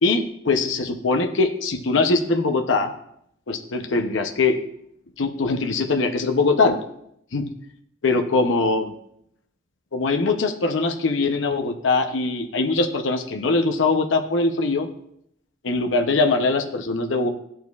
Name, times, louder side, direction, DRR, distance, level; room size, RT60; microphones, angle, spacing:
voice 1, 0.0-2.9 3.5-4.6 5.2-6.8 7.3-7.5 8.0-8.9 9.9-14.9 15.6-17.3, left 3 dB, 75° left, 5 dB, 0.6 m, -22 dB
12.5 x 4.4 x 2.3 m, 0.73 s
head